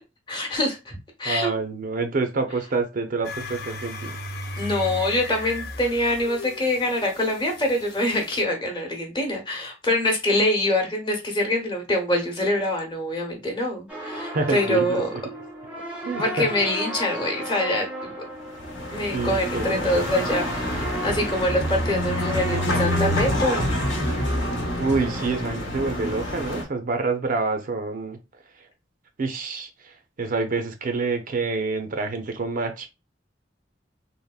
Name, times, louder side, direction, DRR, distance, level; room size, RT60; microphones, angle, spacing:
voice 1, 0.3-1.5 4.6-15.1 16.1-18.2 18.9-23.8, left 1 dB, 25° left, 0.9 m, -25 dB
voice 2, 1.2-4.2 14.3-15.0 16.0-16.5 19.1-20.1 24.8-28.2 28.5-28.7 29.2-32.9, right 3 dB, 50° right, 0.5 m, -27 dB
sound 1, 3.2-8.4, left 2 dB, 60° left, 0.5 m, -36 dB
sound 2, 13.9-25.5, right 1 dB, 5° right, 0.6 m, -35 dB
sound 3, 18.5-26.6, left 1 dB, 80° left, 0.8 m, -27 dB
3.4 x 2.1 x 2.3 m
head